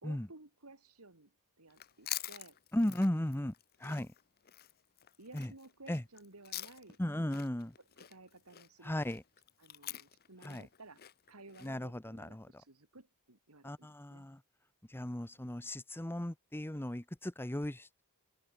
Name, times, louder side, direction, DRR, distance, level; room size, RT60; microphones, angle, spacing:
voice 1, 0.0-2.6 3.0-3.4 5.2-7.0 7.8-8.9 9.6-14.3 15.3-15.7, right 2 dB, 80° right, 3.1 m, -56 dB
Chewing mastication, 1.7-7.0 7.3-11.7, left 13 dB, 45° left, 0.8 m, -46 dB
voice 2, 2.7-3.5 3.8-4.1 5.3-5.5 5.9-6.0 7.0-7.7 8.8-9.2 10.4-10.7 11.6-12.5 13.6-14.4 14.9-18.0, left 1 dB, 10° left, 0.8 m, -36 dB
head